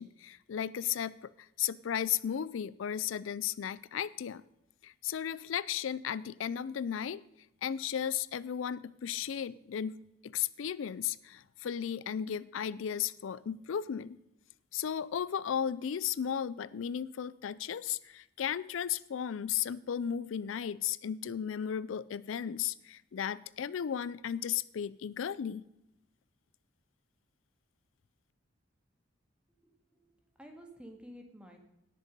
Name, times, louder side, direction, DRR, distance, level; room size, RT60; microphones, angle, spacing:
voice 1, 0.0-4.4 4.8-7.2 7.6-14.2 14.7-25.6, left 9 dB, 85° left, 19 dB, 0.4 m, -35 dB
voice 2, 29.6-30.1 30.3-31.6, equal, 5° right, 3 dB, 1.9 m, -51 dB
18.0 x 6.7 x 5.2 m, 0.87 s
head